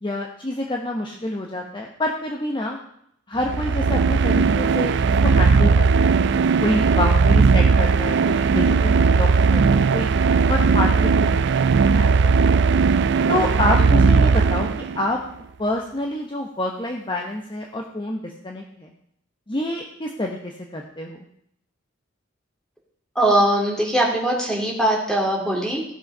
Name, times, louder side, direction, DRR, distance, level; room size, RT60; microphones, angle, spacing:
voice 1, 0.0-2.8 3.3-6.2 6.6-10.1 10.5-12.6 13.3-15.2 15.6-18.9 19.5-21.2, left 1 dB, 25° left, 1 dB, 1.0 m, -27 dB
sound 1, 3.4-15.1, right 5 dB, 60° right, 0.4 m, -18 dB
voice 2, 23.1-25.9, right 1 dB, 5° left, -1 dB, 2.7 m, -21 dB
16.0 x 6.4 x 5.4 m, 0.72 s
head